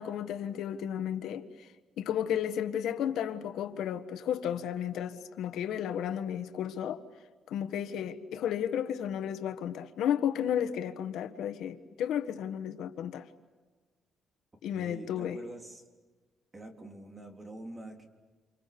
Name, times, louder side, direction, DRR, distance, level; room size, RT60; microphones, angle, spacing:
voice 1, 0.0-1.7 2.0-7.0 7.5-13.2 14.6-15.4, left 9 dB, 85° left, 1.5 m, -33 dB
voice 2, 14.7-15.8 16.5-18.1, right 1 dB, 15° right, 3.5 m, -46 dB
29.5 x 28.5 x 7.0 m
cardioid pair, 160°, 0 cm